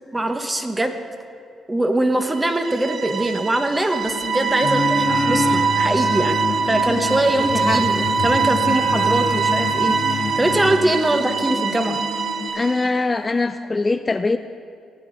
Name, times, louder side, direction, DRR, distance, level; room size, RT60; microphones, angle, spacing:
voice 1, 0.1-1.0 1.7-6.4 6.6-12.0, right 1 dB, 15° right, 7 dB, 0.8 m, -22 dB
sound 1, 2.2-13.0, right 6 dB, 45° right, 0.6 m, -23 dB
sound 2, 4.0-12.5, left 4 dB, 70° left, 1.6 m, -34 dB
sound 3, 4.6-10.8, left 4 dB, 55° left, 1.1 m, -27 dB
voice 2, 7.4-7.8 12.5-14.4, left 3 dB, 25° left, 9 dB, 0.3 m, -22 dB
15.0 x 9.2 x 3.8 m, 2.3 s
cardioid pair, 90°, 0 cm